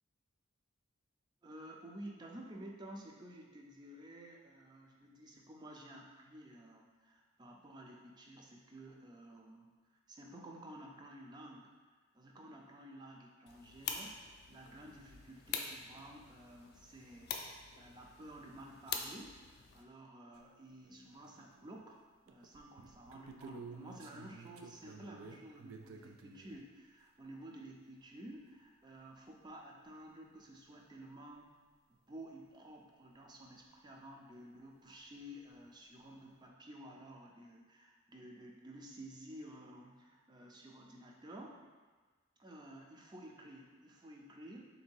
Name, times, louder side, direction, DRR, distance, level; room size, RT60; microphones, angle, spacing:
voice 1, 1.4-9.7 10.1-11.7 12.1-41.7 42.4-44.7, right 1 dB, 20° right, 0 dB, 0.4 m, -52 dB
sound 1, 13.5-19.8, left 6 dB, 50° left, 0.4 m, -45 dB
sound 2, 20.3-20.4 20.8-21.9 22.3-26.6 29.2-29.3 29.5-29.6 30.6-30.7 31.3-31.4 35.0-35.1 35.3-35.7, right 4 dB, 85° right, 0.4 m, -53 dB
3.6 x 2.8 x 4.5 m, 1.4 s
head